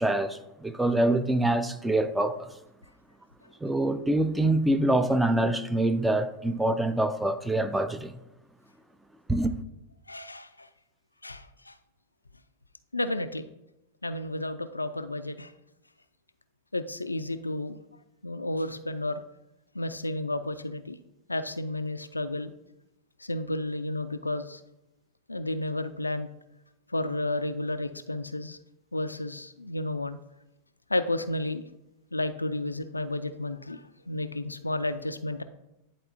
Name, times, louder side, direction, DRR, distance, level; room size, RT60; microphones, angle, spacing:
voice 1, 0.0-2.5 3.6-8.1 9.3-9.6, right 1 dB, 5° right, 0.4 m, -25 dB
voice 2, 10.1-10.7 11.2-11.7 12.9-13.5 14.0-15.5 16.7-17.8 18.2-19.2 19.7-21.0 21.3-22.5 23.2-24.6 25.3-26.3 26.9-28.6 28.9-30.2 30.9-31.6 32.1-35.4, left 1 dB, 80° left, 0.3 m, -32 dB
10.0 x 4.2 x 2.6 m
figure-of-eight pair, 90°, 0 cm